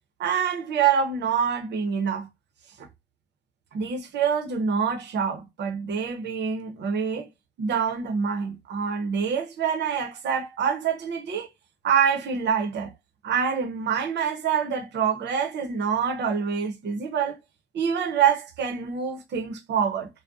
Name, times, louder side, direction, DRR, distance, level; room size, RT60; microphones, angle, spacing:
voice 1, 0.2-2.3 2.8-2.9 3.7-7.3 7.6-11.5 11.8-12.9 13.2-17.4 17.7-20.1, right 7 dB, 60° right, 0.6 m, -26 dB
2.6 x 2.1 x 2.3 m
cardioid pair, 90°, 20 cm